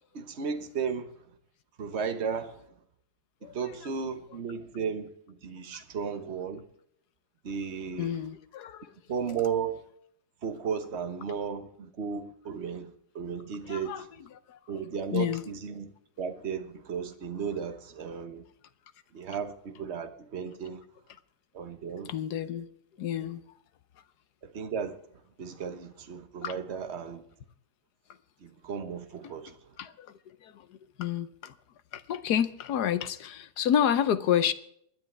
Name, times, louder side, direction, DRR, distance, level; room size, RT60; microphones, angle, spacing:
voice 1, 0.1-1.1 1.8-2.7 3.4-6.6 7.4-8.2 9.1-9.8 10.4-14.1 14.7-15.9 16.2-18.4 19.1-20.8 21.5-22.1 23.2-23.3 24.4-25.0 25.4-27.2 28.4-29.8, right 6 dB, 40° right, 1.4 m, -35 dB
voice 2, 8.0-8.9 13.7-14.0 14.5-14.6 15.0-15.6 22.1-22.7 23.0-23.4 26.4-26.5 29.8-30.1 30.4-31.5 31.9-34.5, left 9 dB, 65° left, 1.3 m, -29 dB
25.0 x 10.5 x 3.4 m
omnidirectional pair, 1.9 m